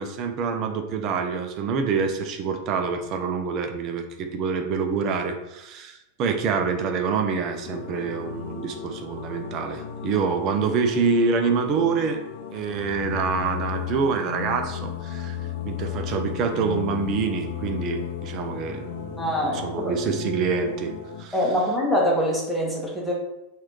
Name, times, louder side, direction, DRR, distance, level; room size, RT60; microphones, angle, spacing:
voice 1, 0.0-12.2 12.5-15.4 15.6-20.9 21.2-21.3, right 5 dB, 35° right, 5 dB, 0.4 m, -26 dB
sound 1, 7.6-21.3, left 9 dB, 50° left, 0.4 m, -35 dB
voice 2, 19.2-20.0 21.3-23.1, equal, 5° left, -4 dB, 0.9 m, -24 dB
3.0 x 2.4 x 3.1 m, 0.90 s
figure-of-eight pair, 90°, 0 cm